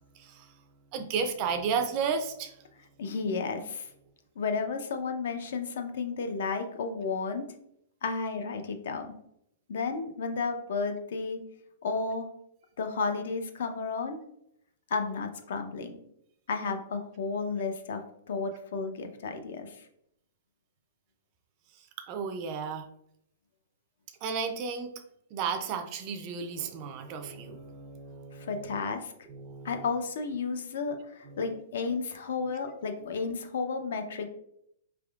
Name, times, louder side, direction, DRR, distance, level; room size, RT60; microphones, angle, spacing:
voice 1, 0.1-0.5 0.9-2.6 21.8-22.9 24.2-24.9 25.3-28.8 29.3-29.9 30.9-31.0 31.2-31.6, right 6 dB, 30° right, 7 dB, 0.4 m, -34 dB
voice 2, 3.0-3.9 4.4-7.4 8.0-9.1 9.7-11.4 11.8-12.3 12.8-14.2 14.9-16.0 16.5-19.9 28.3-29.1 29.6-34.3, left 4 dB, 65° left, 7 dB, 0.6 m, -32 dB
4.8 x 3.4 x 2.4 m, 0.74 s
hypercardioid pair, 170°, 0 cm